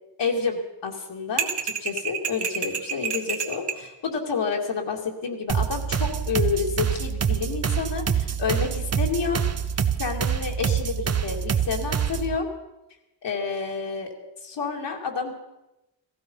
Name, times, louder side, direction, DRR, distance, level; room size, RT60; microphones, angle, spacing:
voice 1, 0.2-9.4 10.0-12.5 13.2-14.1 14.4-15.3, left 5 dB, 65° left, 0 dB, 2.5 m, -29 dB
sound 1, 1.4-3.8, right 7 dB, 60° right, 1.6 m, -29 dB
sound 2, 5.5-12.4, right 8 dB, 35° right, 0.8 m, -26 dB
16.5 x 15.5 x 5.5 m, 0.96 s
wide cardioid pair, 155°, 45 cm